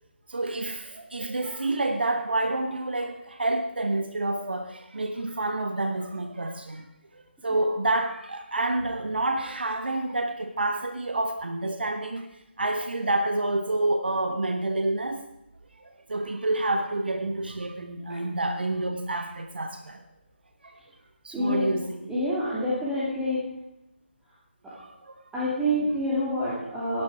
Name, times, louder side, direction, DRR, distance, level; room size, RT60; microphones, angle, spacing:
voice 1, 0.3-6.9 7.1-15.2 15.8-20.0 20.6-20.8 21.2-22.1 24.8-25.2, right 2 dB, 60° right, 7 dB, 1.2 m, -28 dB
voice 2, 21.3-21.7 22.1-23.4 25.3-27.0, equal, 5° right, -10 dB, 2.6 m, -27 dB
16.5 x 11.0 x 4.8 m, 0.87 s
figure-of-eight pair, 155°, 6 cm